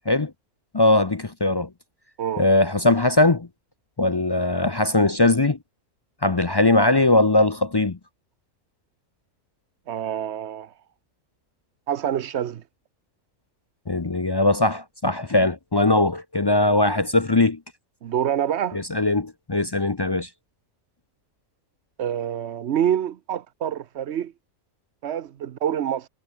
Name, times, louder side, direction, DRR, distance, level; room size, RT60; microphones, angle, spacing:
voice 1, 0.7-1.7 2.4-3.5 4.0-5.6 6.2-8.0 13.9-17.6 18.7-20.3, left 2 dB, 35° left, 0.4 m, -20 dB
voice 2, 9.9-10.7 11.9-12.6 18.0-18.8 22.0-24.3 25.0-26.1, right 10 dB, 55° right, 0.9 m, -26 dB
omnidirectional pair, 1.5 m